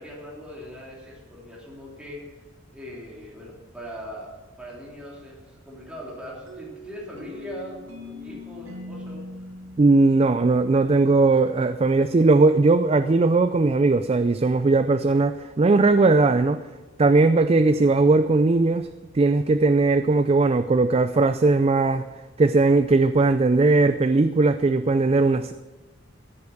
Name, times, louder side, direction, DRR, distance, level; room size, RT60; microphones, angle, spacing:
voice 1, 0.0-2.2 2.7-4.3 4.6-9.4, equal, 5° right, -5 dB, 3.3 m, -40 dB
sound 1, 6.5-11.1, left 1 dB, 80° right, 2.1 m, -41 dB
voice 2, 9.8-16.6 17.0-18.9 19.1-22.0 22.4-25.5, right 3 dB, 30° right, 11 dB, 0.4 m, -19 dB
14.5 x 8.5 x 6.5 m, 1.2 s
head